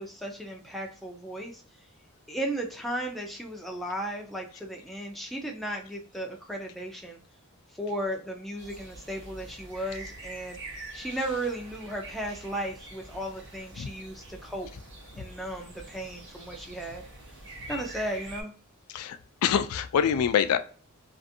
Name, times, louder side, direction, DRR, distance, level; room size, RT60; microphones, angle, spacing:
voice 1, 0.0-1.6 2.3-7.2 7.8-10.6 10.9-14.7 15.1-17.0 17.7-18.5, right 1 dB, ahead, 0.4 m, -35 dB
sound 1, 8.6-18.4, right 2 dB, 55° right, 1.1 m, -45 dB
voice 2, 18.9-20.6, left 8 dB, 75° left, 0.3 m, -25 dB
2.5 x 2.4 x 2.6 m
head